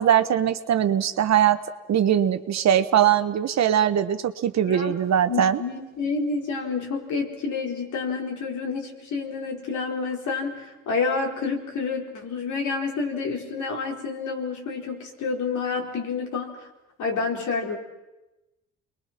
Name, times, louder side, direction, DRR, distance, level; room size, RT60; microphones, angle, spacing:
voice 1, 0.0-1.6 1.9-5.6, right 10 dB, 60° right, 10 dB, 1.3 m, -21 dB
voice 2, 5.3-16.7 17.0-17.8, left 4 dB, 75° left, 1 dB, 4.4 m, -29 dB
29.0 x 22.0 x 6.0 m, 1.0 s
cardioid pair, 90°, 30 cm